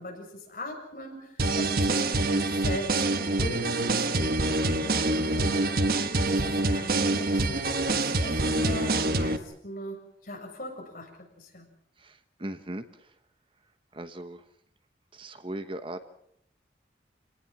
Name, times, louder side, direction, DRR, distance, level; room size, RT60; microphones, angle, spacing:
voice 1, 0.0-5.7 6.3-11.7, left 1 dB, 50° left, 1 dB, 7.2 m, -40 dB
sound 1, 1.4-9.4, right 2 dB, 55° right, 1.4 m, -26 dB
voice 2, 12.0-13.1 13.9-14.4 15.1-16.1, right 1 dB, 30° right, 9 dB, 1.1 m, -39 dB
28.0 x 18.5 x 7.4 m, 0.73 s
head